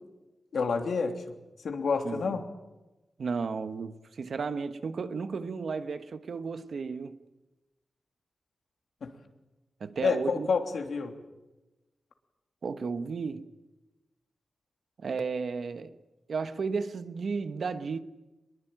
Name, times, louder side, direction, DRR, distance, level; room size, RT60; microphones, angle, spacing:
voice 1, 0.5-1.2 1.6-2.4 9.0-9.2 10.0-11.1, left 5 dB, 80° left, 3.1 m, -28 dB
voice 2, 2.0-2.4 3.2-7.2 9.8-10.5 12.6-13.5 15.0-16.0 16.3-18.0, right 5 dB, 70° right, 1.3 m, -33 dB
23.0 x 22.0 x 9.1 m
cardioid pair, 75°, 0 cm